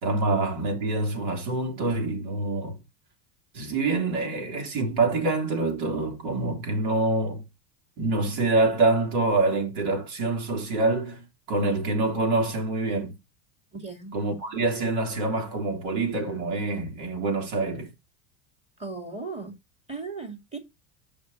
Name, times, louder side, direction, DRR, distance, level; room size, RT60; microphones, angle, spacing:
voice 1, 0.0-2.8 3.5-7.4 8.0-13.1 14.1-17.9, right 3 dB, 65° right, 3.1 m, -26 dB
voice 2, 13.7-14.1 18.8-19.5 19.9-20.6, right 4 dB, 15° right, 2.3 m, -36 dB
6.7 x 5.3 x 3.9 m
hypercardioid pair, 105°, 49 cm